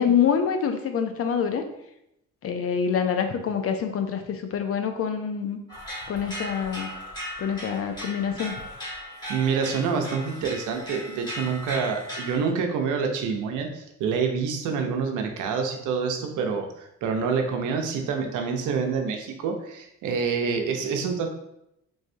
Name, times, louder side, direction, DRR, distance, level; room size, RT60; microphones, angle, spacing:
voice 1, 0.0-1.6 2.4-5.6 6.1-6.9 7.4-8.6, left 7 dB, 50° left, 7 dB, 0.5 m, -26 dB
sound 1, 5.7-12.4, equal, 15° left, 1.4 m, -37 dB
voice 2, 9.3-21.3, right 5 dB, 85° right, 4 dB, 0.6 m, -27 dB
3.5 x 3.2 x 2.6 m, 0.81 s
cardioid pair, 90°, 30 cm